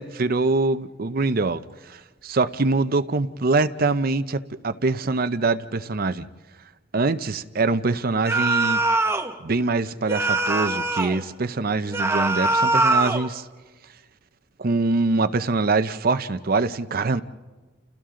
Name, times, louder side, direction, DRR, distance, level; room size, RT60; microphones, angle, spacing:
voice 1, 0.0-6.3 6.9-8.8 9.4-13.5 14.6-17.2, right 3 dB, 50° right, 0.7 m, -24 dB
sound 1, 8.3-9.3 10.1-11.2 11.9-13.3, right 2 dB, 15° right, 0.9 m, -22 dB
29.5 x 29.5 x 3.8 m
head